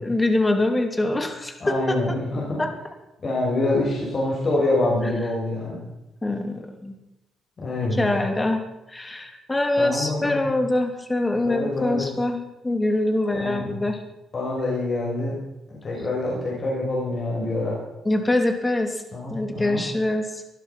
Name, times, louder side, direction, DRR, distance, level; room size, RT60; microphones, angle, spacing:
voice 1, 0.0-2.0 2.6-2.7 6.2-7.0 7.9-8.6 8.9-14.0 18.0-19.0 19.3-20.4, left 2 dB, 15° left, 6 dB, 2.7 m, -24 dB
voice 2, 1.6-2.6 3.2-5.8 7.6-8.1 9.8-10.5 11.4-12.1 13.3-13.8 14.3-15.4 15.7-17.8 19.1-19.8, left 2 dB, 40° left, -4 dB, 6.5 m, -26 dB
18.5 x 11.5 x 6.1 m, 0.95 s
cardioid pair, 90°, 0 cm